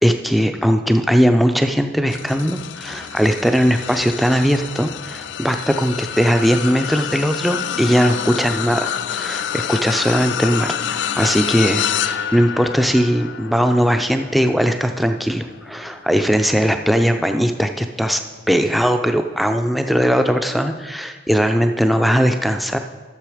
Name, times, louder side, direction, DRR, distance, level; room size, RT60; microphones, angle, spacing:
voice 1, 0.0-18.2 18.5-22.8, equal, ahead, 6 dB, 0.4 m, -19 dB
sound 1, 2.1-17.6 18.1-18.4 19.6-19.7, left 9 dB, 80° left, 0.4 m, -28 dB
12.5 x 6.8 x 4.9 m, 1.4 s
head